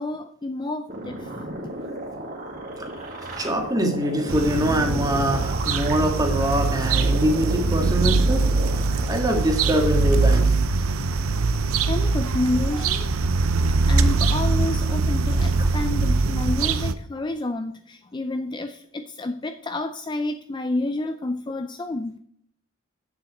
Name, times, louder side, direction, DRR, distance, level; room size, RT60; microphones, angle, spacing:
voice 1, 0.0-1.4 11.9-13.1 13.9-22.2, left 2 dB, 20° left, 8 dB, 0.4 m, -29 dB
sound 1, 0.9-10.4, right 1 dB, 40° right, 2.0 m, -34 dB
voice 2, 3.0-8.4 9.1-10.6 15.6-15.7, equal, 15° right, 3 dB, 1.7 m, -24 dB
sound 2, 4.3-16.9, right 3 dB, 80° right, 0.6 m, -22 dB
9.0 x 7.3 x 4.1 m, 0.65 s
head